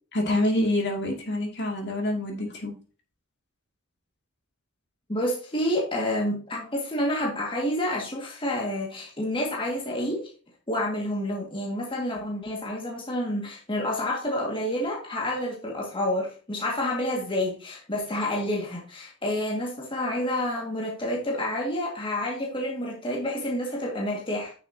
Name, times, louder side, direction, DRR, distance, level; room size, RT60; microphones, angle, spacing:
voice 1, 0.1-2.7, left 1 dB, 50° left, 2 dB, 2.5 m, -26 dB
voice 2, 5.1-10.3 10.7-24.5, left 1 dB, 25° left, -2 dB, 2.1 m, -29 dB
10.0 x 6.8 x 2.8 m, 0.37 s
head